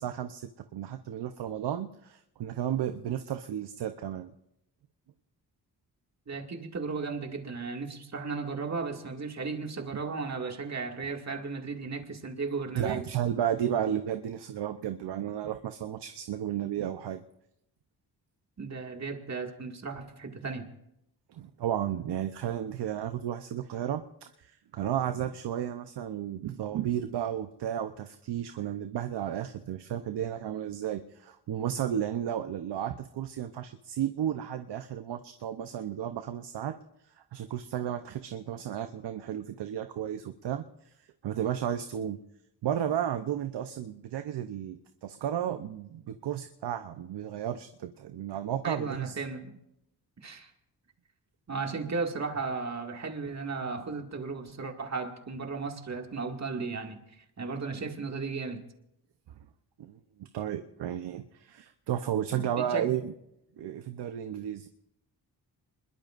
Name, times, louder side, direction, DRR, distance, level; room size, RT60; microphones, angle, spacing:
voice 1, 0.0-4.3 12.7-17.2 21.3-36.8 37.2-40.9 41.2-42.2 42.6-49.2 59.8-63.1 63.6-64.7, right 10 dB, 75° right, 0.8 m, -33 dB
voice 2, 6.3-13.1 18.6-20.7 48.6-49.5 50.2-50.5 51.5-57.0 57.4-58.6 62.3-62.9, right 4 dB, 40° right, 2.1 m, -35 dB
25.5 x 21.5 x 2.5 m
cardioid pair, 90°, 42 cm